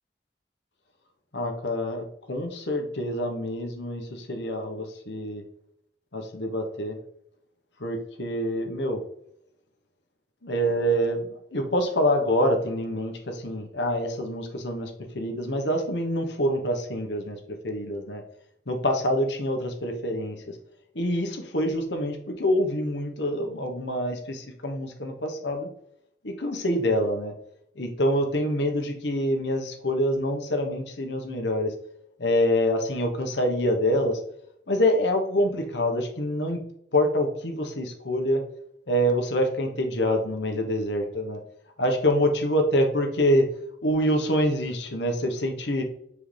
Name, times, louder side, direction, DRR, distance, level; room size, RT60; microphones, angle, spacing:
voice 1, 1.3-5.4 6.1-7.0 7.8-9.0 10.4-17.4 17.6-18.2 18.7-20.5 20.9-25.7 26.2-27.3 27.8-31.7 32.2-34.2 34.7-36.6 36.9-38.4 38.9-41.4 41.8-43.4 43.8-45.8, equal, 90° left, 4 dB, 1.3 m, -26 dB
7.6 x 4.8 x 3.4 m, 0.73 s
head